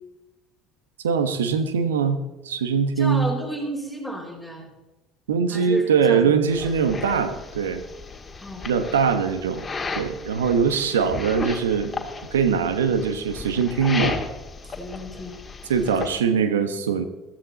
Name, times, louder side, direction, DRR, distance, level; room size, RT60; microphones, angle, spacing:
voice 1, 1.0-3.3 5.3-7.8 8.7-9.6 9.9-12.0 12.3-14.2 15.7-17.0, right 6 dB, 85° right, 10 dB, 1.2 m, -22 dB
voice 2, 3.0-4.7 5.5-6.5 8.4-8.6 14.6-15.4 15.9-16.1, equal, 5° right, 0 dB, 4.8 m, -33 dB
sound 1, 6.5-16.2, left 4 dB, 25° left, 2.1 m, -34 dB
15.0 x 14.0 x 4.2 m, 1.1 s
hypercardioid pair, 65°, 0 cm